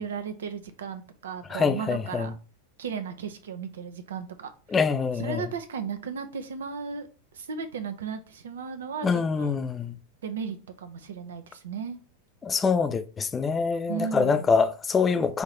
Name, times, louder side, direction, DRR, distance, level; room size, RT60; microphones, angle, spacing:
voice 1, 0.0-2.3 2.8-4.5 5.1-7.1 7.3-9.5 10.2-12.0 13.9-14.5, right 6 dB, 70° right, 0.7 m, -35 dB
voice 2, 1.5-2.3 4.7-5.4 9.0-10.0 12.4-15.4, left 5 dB, 20° left, 0.5 m, -25 dB
5.7 x 2.8 x 3.1 m
figure-of-eight pair, 90°, 0 cm